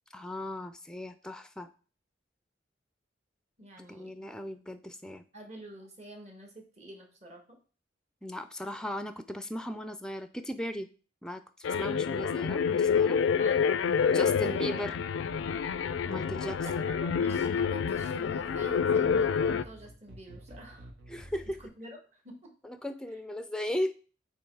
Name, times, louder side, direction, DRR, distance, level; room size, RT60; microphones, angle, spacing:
voice 1, 0.1-1.7 3.8-5.2 8.2-10.9 11.2-11.4 11.8-13.2 14.1-14.9 16.1-16.6 21.1-21.6 22.6-23.9, left 1 dB, 5° left, 9 dB, 0.4 m, -37 dB
voice 2, 3.6-4.2 5.3-7.6 13.4-14.8 16.6-20.9 21.6-22.5, right 1 dB, 35° right, 2 dB, 1.5 m, -48 dB
sound 1, 11.6-19.6, left 6 dB, 85° left, 0.4 m, -28 dB
sound 2, 15.3-21.7, equal, 80° right, 1.5 m, -50 dB
8.4 x 3.1 x 4.7 m, 0.38 s
head